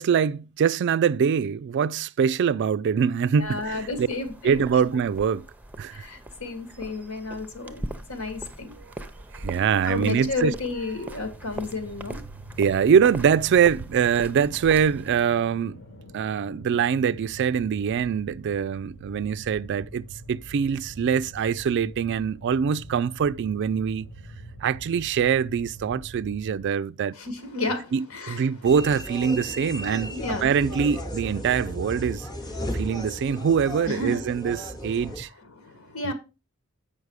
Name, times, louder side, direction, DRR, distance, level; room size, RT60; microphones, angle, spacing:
voice 1, 0.0-4.1 4.4-5.5 5.8-6.0 8.8-8.9 9.3-10.5 12.6-15.8 16.1-24.1 24.6-27.1 27.9-32.3 32.7-35.3 36.0-36.1, right 7 dB, 55° right, 0.3 m, -24 dB
voice 2, 3.4-4.6 5.9-8.8 9.9-12.2 27.2-28.4 30.1-30.5 32.6-32.8 33.9-34.2 35.5-36.1, left 3 dB, 75° left, 1.9 m, -32 dB
sound 1, 3.4-15.3, right 1 dB, 5° right, 0.6 m, -41 dB
sound 2, 11.3-26.7, right 1 dB, 60° left, 1.4 m, -44 dB
sound 3, 28.6-35.2, equal, 20° left, 1.0 m, -35 dB
8.1 x 5.6 x 4.8 m
head